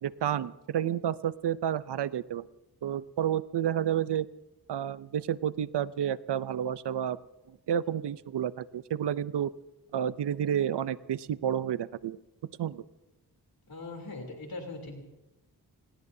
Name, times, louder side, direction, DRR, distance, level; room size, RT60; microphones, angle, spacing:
voice 1, 0.0-2.5 2.8-4.3 4.7-7.2 7.7-9.5 9.9-12.2 12.6-12.8, right 9 dB, 80° right, 16 dB, 0.6 m, -30 dB
voice 2, 13.7-15.0, left 2 dB, 60° left, 2 dB, 3.2 m, -40 dB
27.5 x 19.5 x 2.7 m, 1.0 s
cardioid pair, 55°, 40 cm